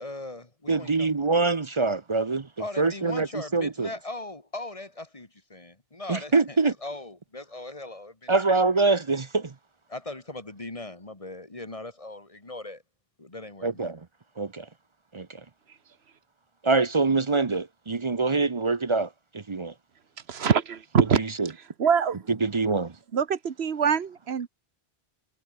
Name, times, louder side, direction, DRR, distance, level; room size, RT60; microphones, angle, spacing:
voice 1, 0.0-1.1 2.6-8.4 9.9-12.8 13.2-13.9, left 2 dB, 35° left, 2.2 m, -39 dB
voice 2, 0.7-2.5 2.8-3.3 3.5-3.9 6.1-6.7 8.3-9.5 13.6-14.0 14.4-14.7 15.1-15.4 16.6-19.7 21.1-21.5 22.4-22.9, right 3 dB, 35° right, 0.7 m, -24 dB
voice 3, 20.3-21.2 21.8-22.2 23.1-24.5, right 7 dB, 85° right, 1.4 m, -24 dB
omnidirectional pair, 1.0 m